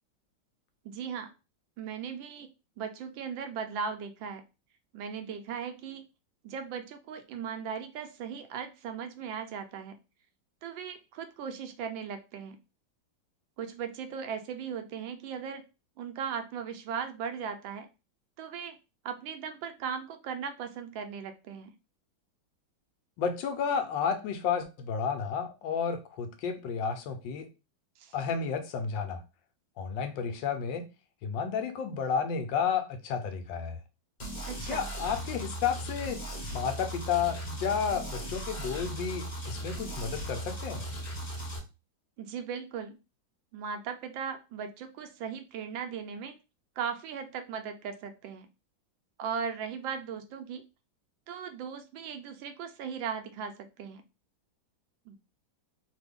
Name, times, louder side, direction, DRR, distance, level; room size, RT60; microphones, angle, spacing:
voice 1, 0.8-1.3 1.8-2.5 2.8-4.4 4.9-6.0 6.4-9.9 10.6-12.6 13.6-15.6 16.0-17.9 18.4-18.8 19.0-21.7 28.0-28.1 34.4-34.9 42.2-43.0 43.5-46.4 46.8-48.5 49.2-50.6 51.3-54.0 55.1-55.2, right 7 dB, 80° right, 1.3 m, -38 dB
voice 2, 23.2-27.5 28.1-29.2 29.8-30.9 31.2-33.8 34.7-36.2 36.5-40.9, left 6 dB, 75° left, 1.2 m, -31 dB
sound 1, 34.2-41.6, right 1 dB, 30° left, 0.9 m, -38 dB
3.3 x 2.2 x 3.4 m
omnidirectional pair, 2.1 m